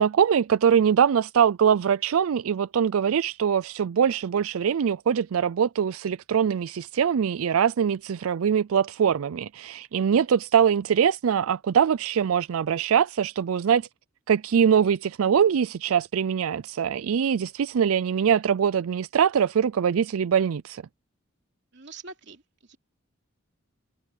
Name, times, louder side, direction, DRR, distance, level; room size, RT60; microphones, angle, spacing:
voice 1, 0.0-13.9 14.3-20.8, right 7 dB, 90° right, 0.4 m, -23 dB
voice 2, 21.7-22.8, right 4 dB, 55° right, 3.1 m, -45 dB
head